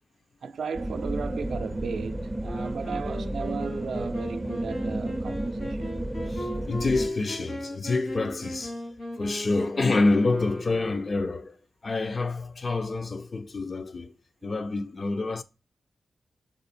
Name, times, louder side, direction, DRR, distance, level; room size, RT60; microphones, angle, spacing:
voice 1, 0.4-6.0, right 5 dB, 80° right, 0.3 m, -35 dB
sound 1, 0.7-7.1, right 1 dB, 10° right, 0.4 m, -32 dB
Wind instrument woodwind instrument, 2.4-11.4, equal, 80° left, 2.7 m, -38 dB
voice 2, 6.3-11.6 11.8-14.1 14.4-15.4, left 3 dB, 50° left, 0.4 m, -27 dB
4.3 x 2.6 x 4.3 m
cardioid pair, 55°, 0 cm